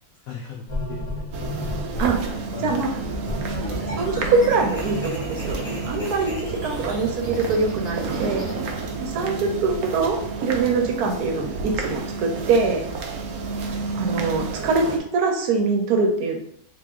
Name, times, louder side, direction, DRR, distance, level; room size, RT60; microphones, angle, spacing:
voice 1, 0.2-2.0 2.5-3.0 13.9-14.7, left 6 dB, 80° left, 0 dB, 0.7 m, -40 dB
sound 1, 0.7-2.3 3.0-8.5, left 1 dB, 35° left, 0.6 m, -33 dB
sound 2, 1.3-15.0, right 4 dB, 85° right, 0.7 m, -30 dB
voice 2, 2.0-2.3 2.6-2.9 3.9-8.5 9.0-12.8 14.0-14.8 15.1-16.4, right 4 dB, 70° right, 3 dB, 1.0 m, -23 dB
3.4 x 2.9 x 3.6 m, 0.68 s
omnidirectional pair, 2.0 m